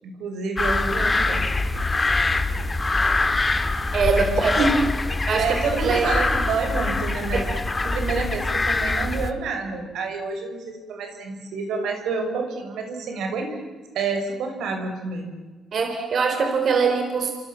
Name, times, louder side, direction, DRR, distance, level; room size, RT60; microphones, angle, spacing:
voice 1, 0.0-1.6 4.1-4.3 4.6-4.7 5.3-7.5 7.8-13.6 13.9-15.4, right 4 dB, 80° right, 4 dB, 6.1 m, -28 dB
sound 1, 0.6-9.3, left 3 dB, 20° left, 2.1 m, -24 dB
voice 2, 3.9-4.8 5.3-5.5 5.8-6.1 7.3-7.5 7.8-8.0 15.7-17.3, right 4 dB, 55° right, 4 dB, 3.9 m, -22 dB
29.0 x 26.5 x 7.3 m, 1.4 s
cardioid pair, 105°, 0 cm